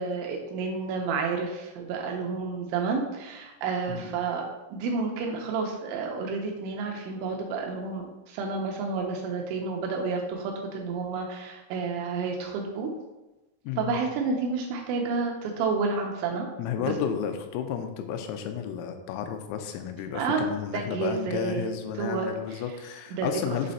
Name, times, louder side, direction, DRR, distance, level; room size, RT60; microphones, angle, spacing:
voice 1, 0.0-4.4 4.7-12.9 13.8-16.5 16.8-16.9 20.1-20.4 20.7-21.7 22.0-22.6 23.1-23.3, right 4 dB, 85° right, 1 dB, 2.6 m, -30 dB
voice 2, 13.6-14.0 16.6-23.7, left 8 dB, 85° left, 6 dB, 3.2 m, -32 dB
7.7 x 3.2 x 4.1 m, 1.0 s
omnidirectional pair, 6.0 m